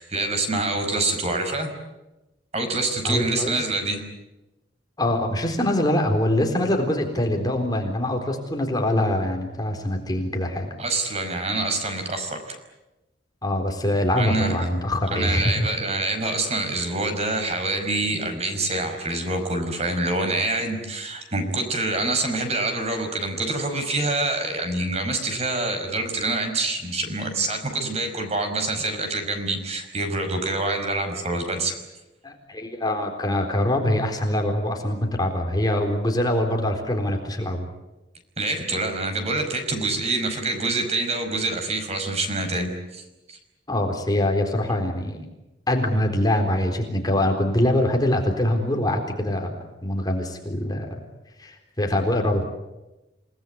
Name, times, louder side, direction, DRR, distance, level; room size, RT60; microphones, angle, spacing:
voice 1, 0.0-1.7 2.5-4.0 10.8-12.6 14.2-14.7 15.1-31.7 38.4-43.4, right 2 dB, 35° right, 6 dB, 5.3 m, -26 dB
voice 2, 3.0-3.5 5.0-10.7 13.4-15.4 32.2-37.7 43.7-45.2 45.7-49.5 49.8-50.9 51.4-52.5, left 1 dB, 20° left, 3 dB, 3.9 m, -24 dB
29.0 x 19.0 x 9.6 m, 1.0 s
head